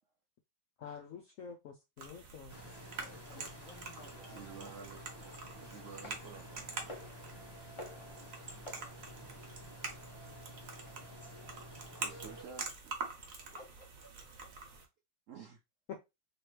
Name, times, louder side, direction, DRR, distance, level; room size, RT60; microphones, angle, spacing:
voice 1, 0.8-2.7 3.0-3.5 15.9-16.0, left 6 dB, 90° left, 0.7 m, -48 dB
sound 1, 2.0-14.8, right 4 dB, 55° right, 1.1 m, -46 dB
sound 2, 2.5-12.4, equal, 15° left, 1.0 m, -51 dB
voice 2, 3.2-5.7 13.5-14.1, left 2 dB, 55° left, 1.2 m, -59 dB
voice 3, 4.3-7.0 8.1-8.5 11.9-13.0 15.3-15.6, right 6 dB, 75° right, 0.7 m, -52 dB
sound 3, 6.0-10.8, left 1 dB, 35° left, 0.5 m, -53 dB
3.1 x 3.0 x 3.1 m
omnidirectional pair, 2.0 m